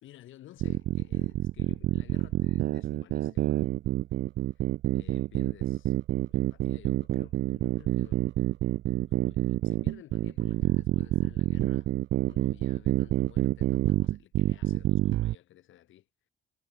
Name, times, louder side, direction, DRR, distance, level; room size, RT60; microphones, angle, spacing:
voice 1, 0.0-3.7 4.5-8.3 9.0-11.9 12.3-16.1, left 13 dB, 80° left, 2.5 m, -54 dB
sound 1, 0.6-15.3, right 14 dB, 70° right, 0.5 m, -27 dB
cardioid pair, 90°, 20 cm